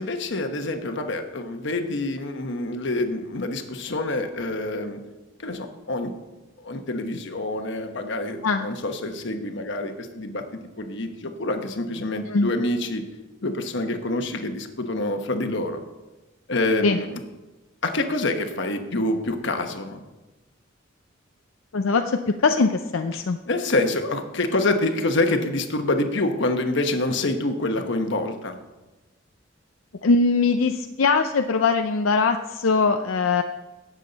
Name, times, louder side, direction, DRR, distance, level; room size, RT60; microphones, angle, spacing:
voice 1, 0.0-5.0 5.4-6.1 6.6-10.4 10.8-13.0 13.4-15.8 16.5-17.2 17.8-20.0 23.1-28.6, left 2 dB, 65° left, 6 dB, 1.2 m, -26 dB
voice 2, 21.7-23.4 30.0-33.4, left 4 dB, 85° left, 6 dB, 0.5 m, -21 dB
17.0 x 7.3 x 4.1 m, 1.1 s
head